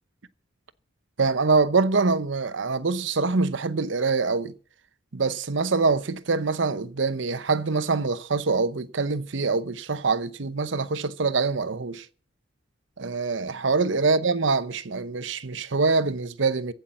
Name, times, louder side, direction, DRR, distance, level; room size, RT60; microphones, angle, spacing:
voice 1, 1.2-4.5 5.1-12.1 13.0-16.7, right 4 dB, 70° right, 0.8 m, -24 dB
15.5 x 8.4 x 7.2 m
head